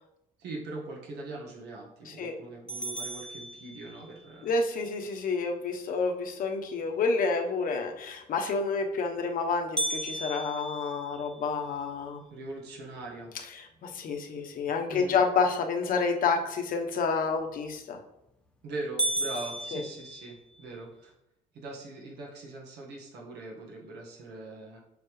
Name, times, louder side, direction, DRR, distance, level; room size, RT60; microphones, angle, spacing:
voice 1, 0.4-4.5 12.3-13.3 14.9-15.2 18.6-21.1 21.5-24.8, right 2 dB, 80° right, -2 dB, 1.7 m, -41 dB
sound 1, 2.7-4.3 9.8-11.9 12.4-12.5 13.0-13.1 13.8-14.1 17.7-18.1 18.5-18.6 19.0-20.7, right 1 dB, 5° left, 0.8 m, -34 dB
voice 2, 4.4-12.2 13.6-18.0 19.7-19.8, left 4 dB, 55° left, 3 dB, 1.1 m, -29 dB
7.1 x 5.5 x 3.2 m, 0.85 s
cardioid pair, 110°, 17 cm